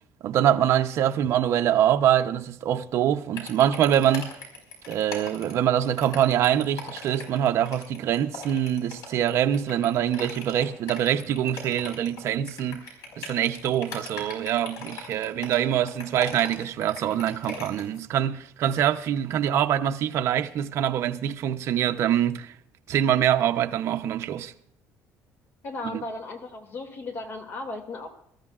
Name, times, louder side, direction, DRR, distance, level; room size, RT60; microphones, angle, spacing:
voice 1, 0.2-4.3 4.9-12.8 13.2-22.5 22.9-24.5 25.9-26.0, right 10 dB, 50° right, 0.7 m, -24 dB
sound 1, 3.3-18.0, left 4 dB, 75° left, 4.9 m, -40 dB
voice 2, 25.6-28.1, left 2 dB, 40° left, 2.3 m, -36 dB
24.0 x 13.5 x 2.4 m
cardioid pair, 155°, 6 cm